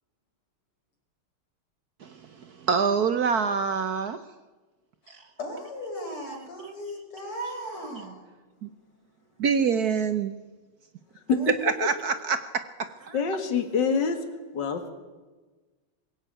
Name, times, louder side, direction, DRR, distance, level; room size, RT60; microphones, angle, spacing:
voice 1, 2.0-4.2 5.1-5.2 6.3-6.9 7.3-8.1 8.6-8.7 9.4-10.4 11.5-13.2, right 6 dB, 60° right, 10 dB, 1.1 m, -27 dB
voice 2, 5.0-8.3 11.3-11.7, left 1 dB, 85° left, 2 dB, 5.5 m, -38 dB
voice 3, 13.1-14.2 14.5-14.9, left 6 dB, 55° left, 6 dB, 2.5 m, -25 dB
22.5 x 16.0 x 9.1 m, 1.3 s
omnidirectional pair, 2.3 m